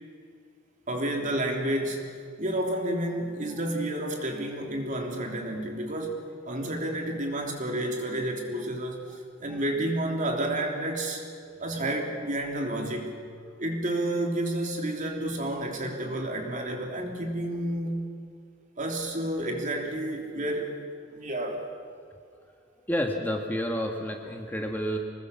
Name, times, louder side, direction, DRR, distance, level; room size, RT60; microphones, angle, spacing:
voice 1, 0.9-2.1 2.4-11.2 11.6-13.1 13.6-18.1 18.8-20.8 21.1-21.7, right 1 dB, 40° right, 1 dB, 3.4 m, -30 dB
voice 2, 22.8-25.0, equal, 10° left, 2 dB, 1.6 m, -30 dB
26.0 x 20.0 x 7.2 m, 2.2 s
head